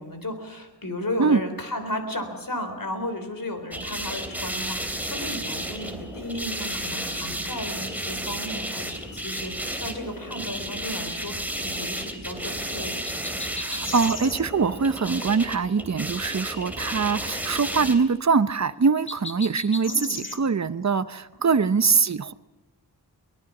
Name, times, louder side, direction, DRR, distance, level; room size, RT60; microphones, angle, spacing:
voice 1, 0.0-13.0 19.8-20.5 21.4-21.7, left 1 dB, 55° left, 7 dB, 3.9 m, -34 dB
sound 1, 3.7-18.0, right 1 dB, 5° right, 3.1 m, -32 dB
sound 2, 13.1-14.4 19.1-20.4, left 2 dB, 30° left, 1.5 m, -35 dB
voice 2, 13.5-22.3, right 5 dB, 40° right, 14 dB, 0.8 m, -23 dB
24.0 x 19.5 x 6.0 m, 1.0 s
wide cardioid pair, 65°, 41 cm